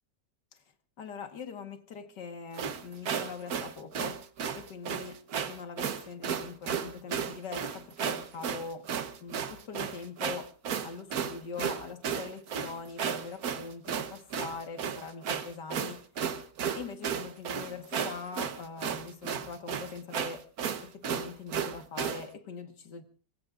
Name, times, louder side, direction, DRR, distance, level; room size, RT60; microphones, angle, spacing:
voice 1, 1.0-4.2 4.5-8.9 9.2-10.5 10.8-16.1 16.7-20.5 20.8-23.0, left 5 dB, 75° left, 2.2 m, -42 dB
sound 1, 2.5-22.3, right 7 dB, 60° right, 1.5 m, -34 dB
26.0 x 21.0 x 2.5 m
omnidirectional pair, 1.9 m